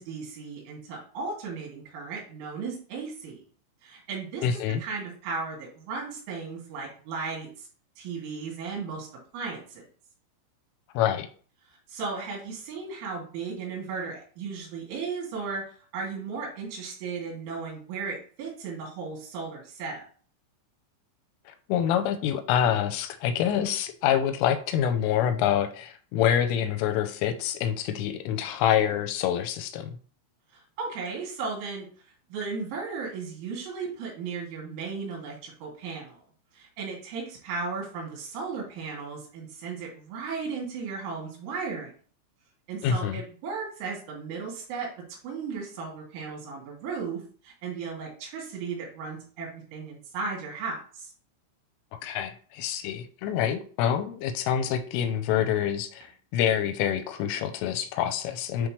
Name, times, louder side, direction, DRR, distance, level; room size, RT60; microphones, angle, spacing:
voice 1, 0.0-3.4 3.8-7.7 8.0-9.1 9.3-9.9 11.9-15.6 15.9-20.0 30.8-31.9 32.3-36.2 36.5-41.9 42.7-51.1, right 4 dB, 75° right, -1 dB, 4.8 m, -35 dB
voice 2, 4.4-4.8 11.0-11.3 21.7-30.0 42.8-43.2 52.0-58.7, left 9 dB, 90° left, 9 dB, 3.2 m, -26 dB
9.7 x 3.8 x 3.2 m, 0.42 s
omnidirectional pair, 5.7 m